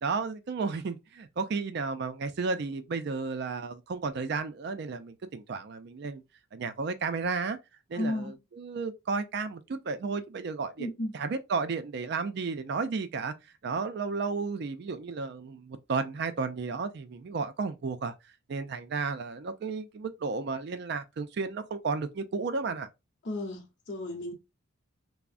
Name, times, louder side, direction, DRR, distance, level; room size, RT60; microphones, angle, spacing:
voice 1, 0.0-6.2 6.5-7.6 7.9-10.9 11.1-13.3 13.6-18.1 18.5-22.9, right 4 dB, 50° right, 0.3 m, -33 dB
voice 2, 7.9-8.3 10.8-11.2 23.2-24.3, left 1 dB, 55° left, 0.7 m, -33 dB
3.4 x 2.0 x 2.4 m
head